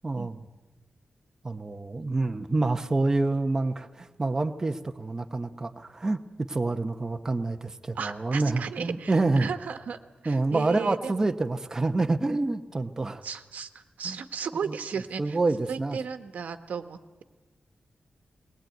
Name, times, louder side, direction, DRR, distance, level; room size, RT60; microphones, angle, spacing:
voice 1, 0.0-0.4 1.4-9.5 10.3-13.2 14.0-14.2 14.7-14.8 15.2-16.0, right 2 dB, 20° right, 6 dB, 0.9 m, -27 dB
voice 2, 7.9-11.2 13.2-15.4 15.7-17.2, right 6 dB, 90° right, 8 dB, 1.3 m, -35 dB
21.0 x 19.5 x 9.2 m, 1.2 s
wide cardioid pair, 175°, 3 cm